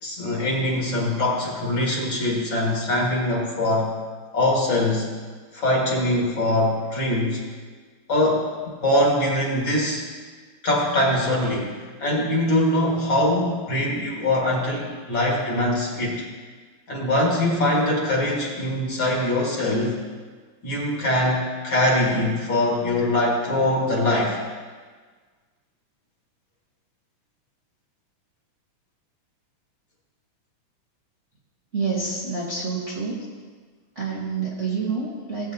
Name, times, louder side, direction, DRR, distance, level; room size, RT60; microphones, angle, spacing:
voice 1, 0.0-3.9 4.3-5.1 5.5-7.4 8.1-8.5 8.8-10.0 10.6-16.2 16.9-20.0 20.6-24.4, left 1 dB, 45° left, -3 dB, 2.6 m, -22 dB
voice 2, 31.7-33.2 33.9-35.5, right 4 dB, 35° right, -7 dB, 1.2 m, -28 dB
19.0 x 8.4 x 2.9 m, 1.5 s
omnidirectional pair, 3.3 m